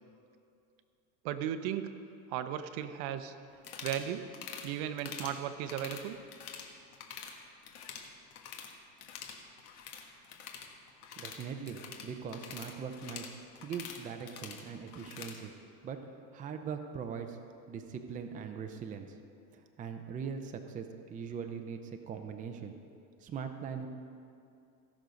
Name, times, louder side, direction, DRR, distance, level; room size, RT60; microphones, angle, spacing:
voice 1, 1.2-1.9 2.3-3.3 3.8-4.3 4.6-6.2, right 10 dB, 60° right, 10 dB, 0.8 m, -36 dB
sound 1, 3.6-4.1 4.3-4.7 5.0-5.4 5.7-6.7 6.9-7.3 7.6-8.7 9.0-15.4, left 7 dB, 85° left, 1.5 m, -46 dB
voice 2, 11.2-13.3 13.6-15.5 15.8-16.0 16.3-17.4 17.7-19.2 19.5-21.8 22.1-22.7 23.2-23.9, right 6 dB, 20° right, 5 dB, 0.5 m, -41 dB
16.0 x 6.4 x 5.2 m, 2.5 s
supercardioid pair, 135°, 43 cm